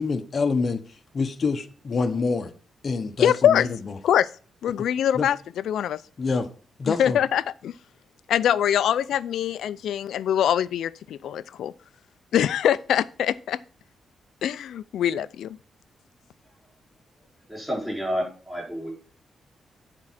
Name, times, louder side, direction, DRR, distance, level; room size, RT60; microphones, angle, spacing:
voice 1, 0.0-2.5 2.8-4.0 5.1-5.3 6.2-6.5 6.8-7.2, left 4 dB, 35° left, 0.8 m, -26 dB
voice 2, 3.2-3.7 4.0-4.3 4.6-5.4 5.7-6.0 6.9-7.7 8.3-11.7 12.3-13.6 14.4-15.6, left 10 dB, 85° left, 0.4 m, -23 dB
voice 3, 17.5-18.9, equal, 5° right, 4.3 m, -30 dB
9.7 x 4.5 x 5.8 m
wide cardioid pair, 175°, 0 cm